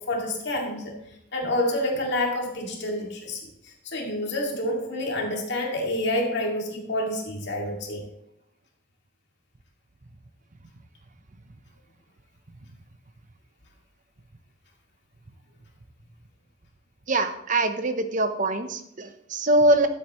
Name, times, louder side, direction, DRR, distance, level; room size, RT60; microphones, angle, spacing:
voice 1, 0.1-0.9 1.3-8.0, left 1 dB, 55° left, 0 dB, 2.2 m, -28 dB
voice 2, 17.1-19.9, right 1 dB, 40° right, 9 dB, 0.8 m, -23 dB
13.0 x 8.1 x 3.1 m, 0.79 s
head